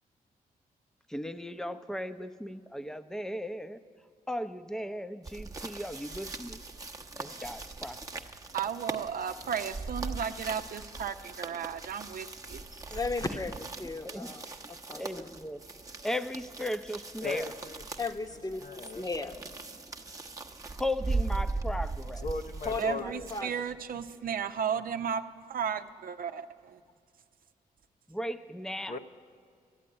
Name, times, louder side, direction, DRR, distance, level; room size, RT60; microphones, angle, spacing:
voice 1, 1.1-3.8 4.3-6.6 7.2-8.0 14.0-14.3 14.9-15.6 16.0-17.5 20.8-22.2 28.1-29.0, left 1 dB, 5° left, 12 dB, 0.7 m, -36 dB
sound 1, 5.2-23.4, right 3 dB, 20° right, 0.9 m, -39 dB
voice 2, 8.5-12.6 22.8-26.8, right 7 dB, 65° right, 9 dB, 0.7 m, -34 dB
voice 3, 12.7-15.3 18.0-19.3 22.6-23.5, left 3 dB, 25° left, 9 dB, 1.1 m, -36 dB
voice 4, 17.2-17.8 18.6-19.1 22.2-23.3 28.9-29.0, left 4 dB, 55° left, 8 dB, 0.8 m, -37 dB
13.0 x 8.3 x 9.7 m, 2.2 s
cardioid pair, 60°, 16 cm